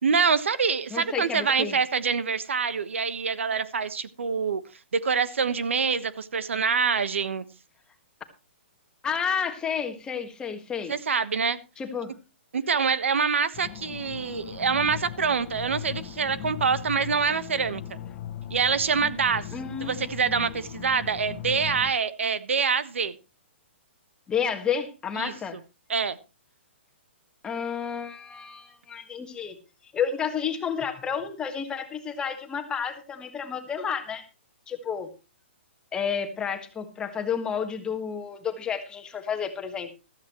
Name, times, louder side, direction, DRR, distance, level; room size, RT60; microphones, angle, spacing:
voice 1, 0.0-4.6 4.9-7.4 10.9-11.6 12.5-18.0 18.5-19.5 19.8-23.2 25.2-25.3 25.9-26.2, right 5 dB, 85° right, 1.2 m, -25 dB
voice 2, 0.9-1.8 9.0-10.9 11.8-12.1 19.5-20.0 24.3-25.6 27.4-29.6 29.9-34.2 34.7-35.1 35.9-39.9, left 7 dB, 10° left, 1.6 m, -31 dB
sound 1, 13.5-21.9, left 10 dB, 35° left, 1.3 m, -39 dB
14.5 x 13.5 x 3.1 m
hypercardioid pair, 150°, 7 cm